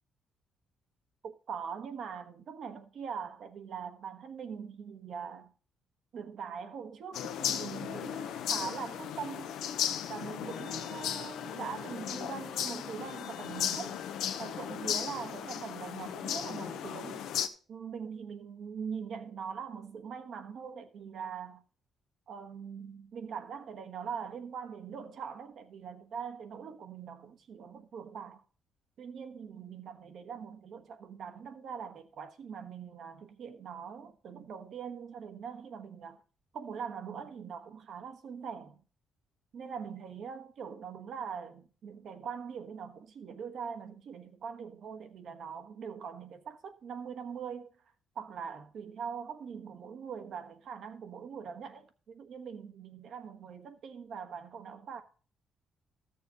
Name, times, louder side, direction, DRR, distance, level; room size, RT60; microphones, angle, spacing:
voice 1, 1.2-5.5 6.1-9.5 10.1-14.0 14.4-17.3 17.7-21.6 22.3-28.4 29.0-36.2 36.5-38.8 39.5-47.7 48.1-55.0, right 6 dB, 65° right, 1.2 m, -42 dB
sound 1, 7.1-17.5, left 9 dB, 85° left, 0.7 m, -36 dB
13.5 x 6.8 x 3.9 m
cardioid pair, 90°, 0 cm